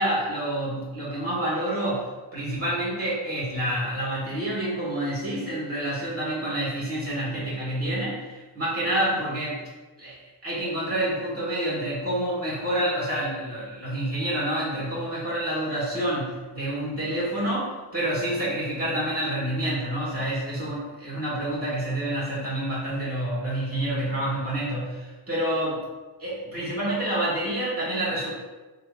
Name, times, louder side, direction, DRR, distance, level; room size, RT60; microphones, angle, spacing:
voice 1, 0.0-9.6 10.0-10.1 10.4-25.8 26.2-28.3, right 1 dB, 30° right, -7 dB, 1.3 m, -28 dB
3.9 x 2.7 x 3.3 m, 1.2 s
cardioid pair, 115°, 45 cm